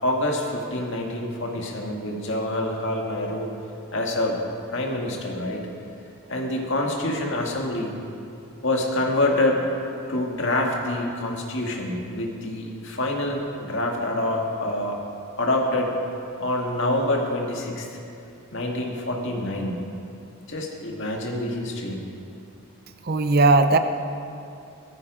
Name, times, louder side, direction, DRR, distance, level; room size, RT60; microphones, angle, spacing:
voice 1, 0.0-3.5 3.9-4.4 4.7-5.7 6.3-8.0 8.6-9.7 10.1-15.0 15.4-16.0 16.4-17.9 18.5-19.8 20.5-22.0, left 1 dB, 55° left, 0 dB, 2.1 m, -26 dB
voice 2, 23.0-23.8, right 3 dB, 45° right, 8 dB, 0.7 m, -17 dB
17.0 x 14.0 x 5.0 m, 2.6 s
head